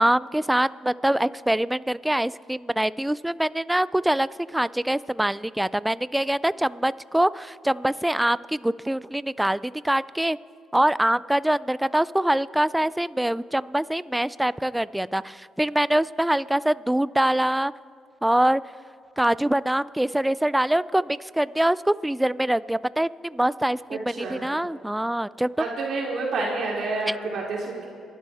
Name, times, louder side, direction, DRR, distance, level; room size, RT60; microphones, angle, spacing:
voice 1, 0.0-10.4 10.7-17.7 18.2-18.6 19.2-25.6 27.1-27.2, right 1 dB, 5° right, 18 dB, 0.3 m, -24 dB
voice 2, 23.9-24.4 25.6-27.9, right 3 dB, 65° right, -3 dB, 3.1 m, -29 dB
29.0 x 12.0 x 3.5 m, 2.6 s
cardioid pair, 90°, 0 cm